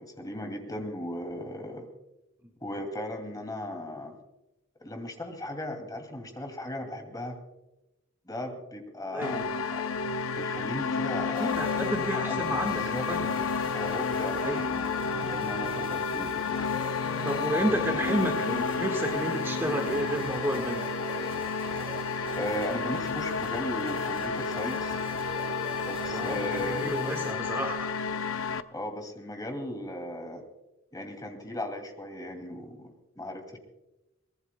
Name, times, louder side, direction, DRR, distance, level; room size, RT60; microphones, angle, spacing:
voice 1, 0.0-1.9 2.6-4.2 4.8-7.4 8.2-9.4 9.7-9.8 10.3-11.6 12.2-12.4 12.7-13.1 13.7-14.6 15.0-16.4 22.3-25.0 25.8-26.9 28.7-30.4 30.9-33.6, left 1 dB, 20° left, 4 dB, 2.4 m, -37 dB
voice 2, 9.1-9.5 11.2-13.3 14.4-14.9 17.2-20.8 26.1-27.9, right 1 dB, 10° right, 2 dB, 1.5 m, -31 dB
sound 1, 9.2-28.6, left 5 dB, 75° left, 0.7 m, -31 dB
sound 2, 11.3-27.3, right 1 dB, 30° right, 3.5 m, -42 dB
23.5 x 19.5 x 2.2 m, 0.96 s
head